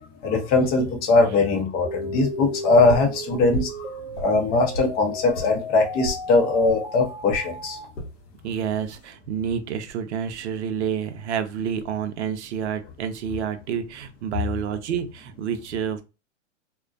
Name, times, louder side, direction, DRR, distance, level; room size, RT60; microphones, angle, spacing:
voice 1, 0.2-3.9 4.2-7.8, left 3 dB, 25° left, 0.7 m, -21 dB
sound 1, 1.8-7.8, equal, 10° right, 0.9 m, -35 dB
sound 2, 2.9-3.2 3.5-3.8 4.1-4.9 5.3-5.5 6.0-6.2 6.7-6.8 7.3-7.5 7.9-8.1 8.7-9.1, right 1 dB, 75° left, 0.9 m, -33 dB
voice 2, 8.4-16.0, right 8 dB, 65° right, 0.6 m, -29 dB
2.3 x 2.2 x 2.4 m
hypercardioid pair, 130°, 37 cm